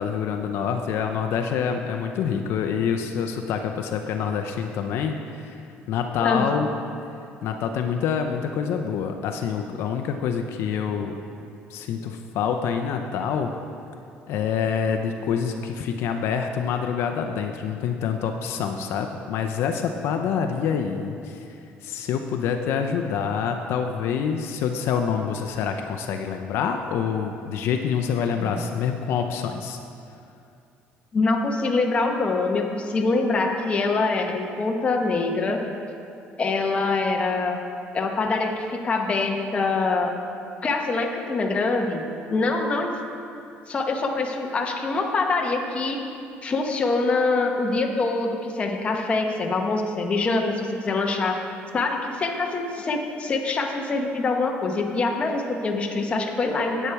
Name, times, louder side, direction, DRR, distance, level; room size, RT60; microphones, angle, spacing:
voice 1, 0.0-5.6 5.9-6.7 7.4-11.2 11.7-13.5 14.3-21.4 21.8-29.8, left 7 dB, 70° left, 5 dB, 0.6 m, -26 dB
voice 2, 31.1-35.6 36.4-37.6 37.9-40.1 40.6-43.0 43.7-46.0 46.4-51.4 51.7-56.9, left 3 dB, 25° left, 2 dB, 0.9 m, -24 dB
10.0 x 8.3 x 4.6 m, 2.6 s
cardioid pair, 145°, 4 cm